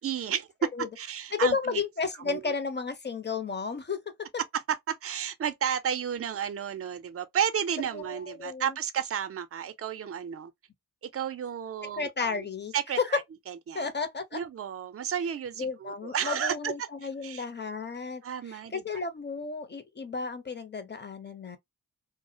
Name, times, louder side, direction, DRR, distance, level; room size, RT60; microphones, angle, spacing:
voice 1, 0.0-0.5 1.0-1.8 2.2-2.5 4.5-4.6 4.9-10.5 11.1-12.5 12.7-13.2 13.5-13.9 14.3-16.7 17.2-17.4 18.2-18.8, right 8 dB, 35° right, 0.5 m, -32 dB
voice 2, 1.3-4.0 7.9-8.8 11.8-13.2 13.7-14.4 15.6-18.2 18.5-21.6, left 5 dB, 25° left, 0.6 m, -32 dB
2.3 x 2.0 x 2.7 m
cardioid pair, 50°, 39 cm